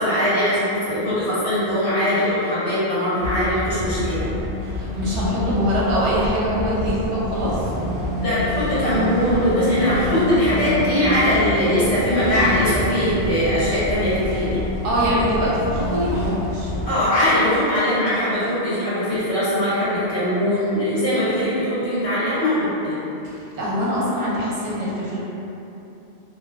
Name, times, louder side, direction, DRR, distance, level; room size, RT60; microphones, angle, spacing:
voice 1, 0.0-4.3 8.1-14.6 16.8-23.0, left 1 dB, 70° left, -13 dB, 1.6 m, -21 dB
sound 1, 3.2-16.9, left 1 dB, 55° right, 1.2 m, -27 dB
voice 2, 4.6-7.6 14.8-16.7 23.2-25.2, equal, 90° right, -6 dB, 1.0 m, -23 dB
3.1 x 2.3 x 2.3 m, 2.9 s
omnidirectional pair, 1.2 m